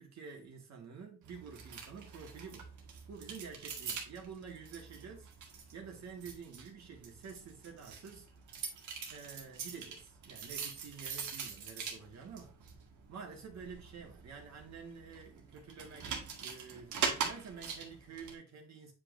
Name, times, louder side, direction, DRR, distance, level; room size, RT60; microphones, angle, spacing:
voice 1, 0.0-2.7 3.1-5.3 5.7-8.3 9.1-12.6 13.1-18.9, right 6 dB, 60° right, 1.8 m, -49 dB
sound 1, 1.2-18.3, right 6 dB, 80° right, 1.7 m, -43 dB
8.2 x 5.2 x 2.6 m
cardioid pair, 90°, 30 cm